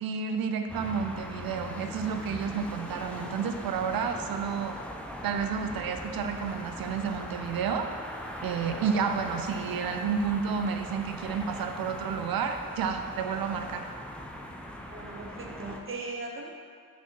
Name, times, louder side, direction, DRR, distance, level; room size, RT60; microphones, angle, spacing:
voice 1, 0.0-4.8 5.2-7.9 8.4-13.9, right 6 dB, 80° right, 6 dB, 0.5 m, -31 dB
sound 1, 0.7-15.8, equal, 5° left, 0.3 m, -40 dB
voice 2, 14.9-16.5, right 3 dB, 35° right, 1 dB, 0.6 m, -38 dB
5.7 x 4.3 x 4.4 m, 2.2 s
wide cardioid pair, 165°, 35 cm